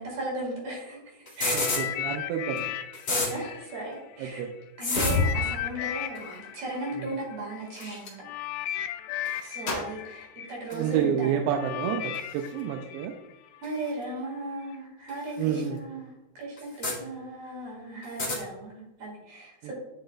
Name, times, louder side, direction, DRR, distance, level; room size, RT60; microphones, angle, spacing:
voice 1, 0.0-1.6 3.1-4.4 4.8-8.2 9.4-11.4 13.6-19.7, right 1 dB, 50° right, -3 dB, 2.9 m, -36 dB
sound 1, 1.3-1.8 2.6-2.7 2.9-3.3 4.8-5.3 6.2-6.3 7.8-8.0 9.2-9.5 10.7-10.8 12.1-12.2 13.6-13.7 15.1-15.2 15.5-15.6 16.6-17.0 18.0-18.4, left 2 dB, 30° left, 2.2 m, -27 dB
sound 2, 1.5-4.4 4.9-13.9 14.6-14.8, left 11 dB, 85° left, 2.2 m, -36 dB
voice 2, 1.5-2.7 4.2-4.5 7.0-7.1 10.7-13.1 15.4-15.8 19.6-19.7, right 8 dB, 85° right, 3 dB, 2.6 m, -29 dB
Gunshot gunfire, 7.7-8.2 9.6-11.1, left 2 dB, 50° left, 1.6 m, -38 dB
10.0 x 6.0 x 2.4 m, 0.95 s
omnidirectional pair, 4.6 m